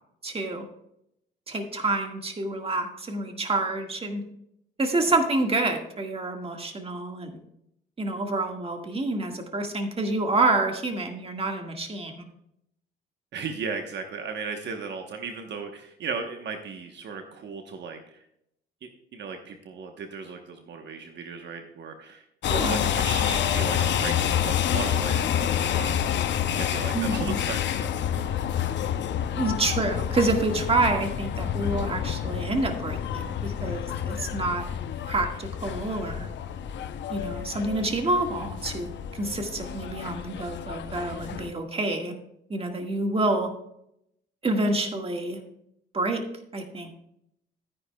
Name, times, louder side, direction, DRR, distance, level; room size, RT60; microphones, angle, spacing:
voice 1, 0.2-0.7 1.5-4.2 4.8-7.3 8.0-12.1 22.5-22.8 26.9-27.4 29.3-34.7 35.1-36.3 37.1-42.1 42.5-43.5 44.4-45.4 45.9-46.2 46.5-46.9, right 2 dB, 30° right, 3 dB, 1.7 m, -28 dB
voice 2, 13.3-18.2 18.8-26.0 26.4-28.3, right 5 dB, 60° right, 4 dB, 1.1 m, -36 dB
sound 1, 22.4-41.5, left 9 dB, 65° left, 0.7 m, -28 dB
13.0 x 9.8 x 2.3 m, 0.77 s
cardioid pair, 90°, 20 cm